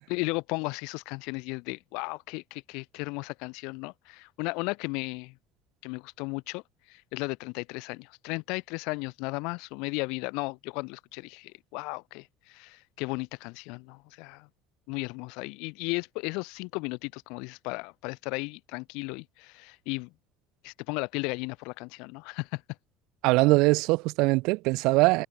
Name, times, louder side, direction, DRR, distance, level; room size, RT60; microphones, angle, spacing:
voice 1, 0.1-5.3 5.8-6.6 6.9-14.5 14.9-20.1 20.6-22.6, left 29 dB, 75° left, 6.6 m, -35 dB
voice 2, 23.2-25.3, right 24 dB, 65° right, 4.7 m, -22 dB
cardioid pair, 165°, 0 cm